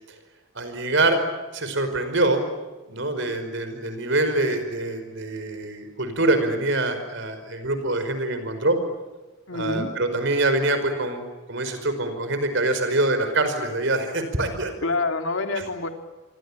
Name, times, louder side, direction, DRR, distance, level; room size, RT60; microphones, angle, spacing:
voice 1, 0.5-1.2 1.5-2.4 2.9-8.8 9.5-11.2 11.5-14.7, right 2 dB, 55° right, 9 dB, 5.2 m, -24 dB
voice 2, 9.5-9.9 14.8-15.9, left 3 dB, 60° left, 5 dB, 3.1 m, -26 dB
28.0 x 24.5 x 8.7 m, 1.2 s
head